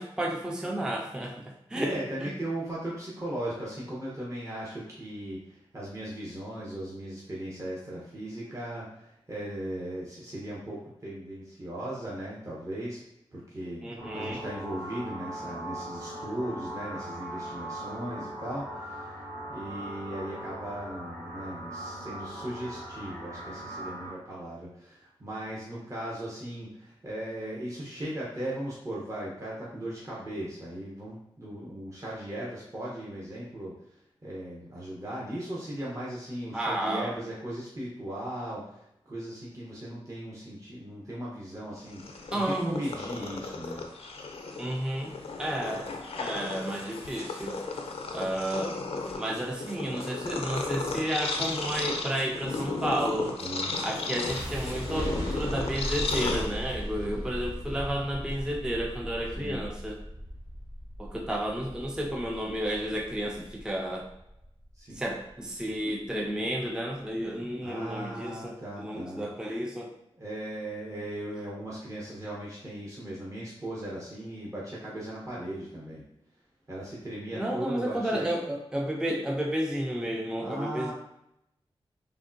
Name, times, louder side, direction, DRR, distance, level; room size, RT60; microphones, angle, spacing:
voice 1, 0.0-2.3 13.8-14.4 36.5-37.2 42.3-42.8 44.6-47.6 48.1-48.8 49.1-53.4 53.8-60.0 61.0-64.1 64.9-69.9 77.3-80.9, right 1 dB, 5° right, 0 dB, 0.4 m, -32 dB
voice 2, 1.7-13.0 13.3-19.2 19.5-33.7 34.2-43.8 53.4-53.7 59.4-59.6 64.7-65.0 67.6-69.2 70.2-76.0 76.7-78.3 80.4-80.9, right 1 dB, 30° right, -6 dB, 0.8 m, -38 dB
sound 1, 14.0-24.1, right 1 dB, 65° right, 1.4 m, -40 dB
Purr, 41.8-56.9, left 3 dB, 70° left, 0.5 m, -35 dB
sound 2, 54.2-66.3, equal, 80° right, 1.1 m, -38 dB
3.4 x 2.2 x 2.5 m, 0.81 s
cardioid pair, 55°, 10 cm